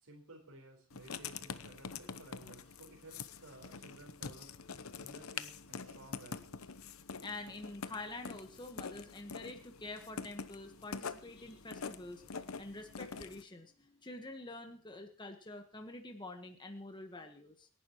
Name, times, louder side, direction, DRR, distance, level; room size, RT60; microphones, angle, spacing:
voice 1, 0.0-4.5 5.0-6.7, right 2 dB, 85° right, -1 dB, 4.7 m, -56 dB
Writing, 0.9-13.4, left 5 dB, 75° left, 0.9 m, -46 dB
voice 2, 7.2-17.7, left 2 dB, 20° left, 4 dB, 1.4 m, -47 dB
27.5 x 11.0 x 3.1 m, 0.38 s
head